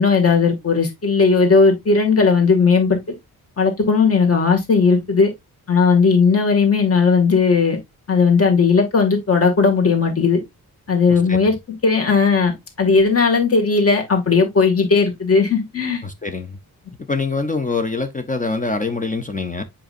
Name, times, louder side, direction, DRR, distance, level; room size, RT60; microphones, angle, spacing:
voice 1, 0.0-3.0 3.6-5.3 5.7-7.8 8.1-10.4 10.9-11.5 11.8-16.0, left 4 dB, 40° left, 2.1 m, -16 dB
voice 2, 16.0-16.6 17.1-19.6, left 3 dB, 20° left, 0.6 m, -24 dB
7.7 x 5.0 x 2.5 m
wide cardioid pair, 150°, 37 cm